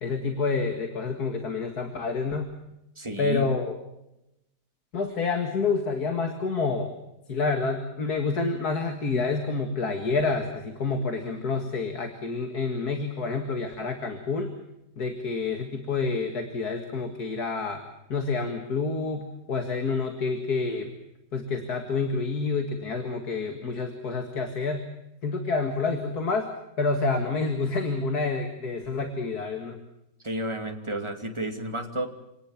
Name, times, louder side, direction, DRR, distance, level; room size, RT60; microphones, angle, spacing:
voice 1, 0.0-2.5 3.2-3.8 4.9-6.9 7.3-14.5 15.0-17.8 18.1-20.9 21.3-24.9 25.2-26.5 26.8-29.8, left 4 dB, 60° left, 5 dB, 2.5 m, -28 dB
voice 2, 3.0-3.5 30.2-32.1, right 1 dB, 15° right, 4 dB, 2.5 m, -31 dB
27.5 x 19.0 x 7.2 m, 0.88 s
omnidirectional pair, 1.9 m